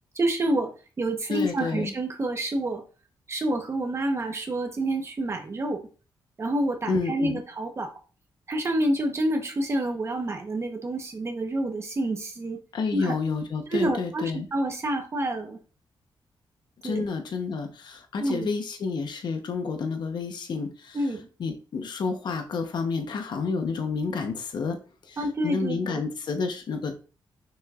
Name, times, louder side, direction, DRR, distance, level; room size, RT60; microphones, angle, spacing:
voice 1, 0.1-0.7 1.0-2.8 3.3-5.8 6.4-7.9 8.5-12.6 12.9-13.1 13.7-15.6 16.8-17.1 18.2-18.5 20.9-21.3 25.2-26.0, right 1 dB, 35° right, 4 dB, 1.0 m, -28 dB
voice 2, 1.3-1.9 6.9-7.4 12.7-14.5 16.8-21.1 21.4-24.8 25.0-27.0, left 4 dB, 60° left, 5 dB, 1.0 m, -30 dB
6.3 x 6.3 x 2.4 m, 0.36 s
wide cardioid pair, 145°, 8 cm